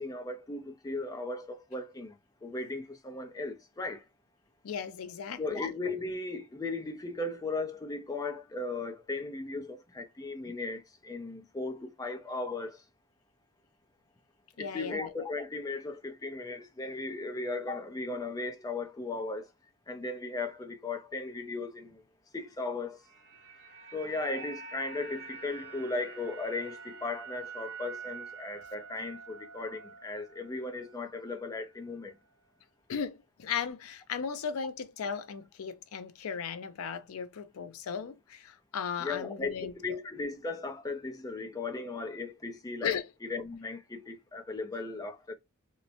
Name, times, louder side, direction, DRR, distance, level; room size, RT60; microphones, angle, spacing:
voice 1, 0.0-2.2 2.4-4.0 5.4-12.8 14.6-19.5 19.9-22.0 22.3-23.0 23.9-32.2 39.0-43.0 43.3-45.3, left 3 dB, 15° left, 0.4 m, -37 dB
voice 2, 4.6-5.7 14.6-15.1 32.9-40.0 42.8-43.1, left 7 dB, 80° left, 0.4 m, -36 dB
sound 1, 22.8-31.1 31.4-31.6, right 5 dB, 55° right, 0.8 m, -46 dB
2.9 x 2.1 x 2.4 m
head